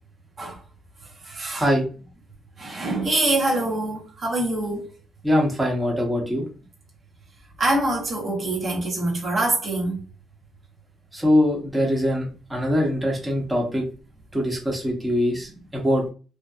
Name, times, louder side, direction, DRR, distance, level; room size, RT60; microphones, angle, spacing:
voice 1, 1.0-1.7 2.6-4.9 7.6-10.0, right 2 dB, 45° right, 0.8 m, -25 dB
voice 2, 1.5-1.8 5.2-6.4 11.1-13.8 14.3-16.0, equal, 15° right, 0.9 m, -22 dB
2.7 x 2.1 x 2.2 m
cardioid pair, 90°, 0 cm